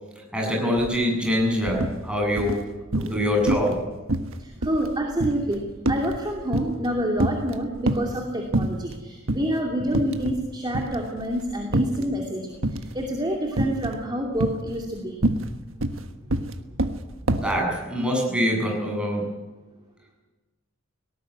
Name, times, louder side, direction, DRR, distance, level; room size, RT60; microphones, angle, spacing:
voice 1, 0.3-2.6 2.9-3.8 17.4-19.3, equal, 5° right, -1 dB, 7.5 m, -24 dB
sound 1, 0.8-1.0 1.3-2.0 2.4-3.2 3.5-3.8 4.1-6.9 7.2-8.2 8.5-9.0 9.3-9.5 9.9-10.5 10.7-12.1 12.6-13.0 13.6-14.0 14.4-17.6, right 1 dB, 70° right, 1.4 m, -26 dB
voice 2, 4.6-5.6 5.9-8.9 9.3-12.6 12.9-15.2, equal, 20° right, 0 dB, 2.7 m, -27 dB
18.5 x 18.5 x 9.6 m, 1.2 s
head